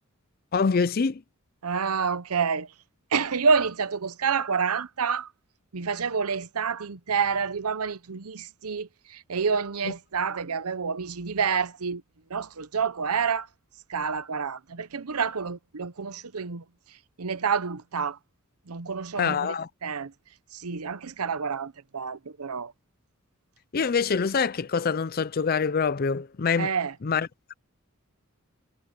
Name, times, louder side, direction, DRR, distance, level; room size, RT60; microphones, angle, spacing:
voice 1, 0.5-1.2 19.2-19.7 23.7-26.7 27.0-27.3, left 5 dB, 40° left, 0.4 m, -25 dB
voice 2, 1.6-2.7 3.1-5.3 5.7-12.0 12.3-13.5 13.9-16.6 17.2-18.2 18.7-19.5 19.8-20.1 20.5-22.7 26.6-26.9, right 5 dB, 85° right, 0.8 m, -28 dB
head